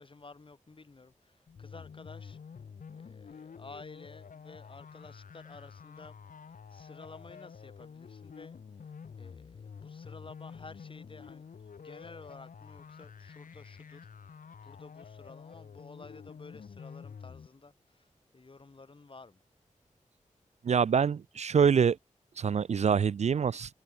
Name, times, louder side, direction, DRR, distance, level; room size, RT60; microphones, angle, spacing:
voice 1, 0.0-2.4 2.9-6.1 6.5-8.9 9.2-11.4 11.8-19.4, left 3 dB, 40° left, 5.7 m, -52 dB
sound 1, 1.5-17.5, left 6 dB, 90° left, 3.9 m, -49 dB
voice 2, 20.6-22.0 22.4-23.7, right 7 dB, 60° right, 0.4 m, -25 dB
wide cardioid pair, 120°, 13 cm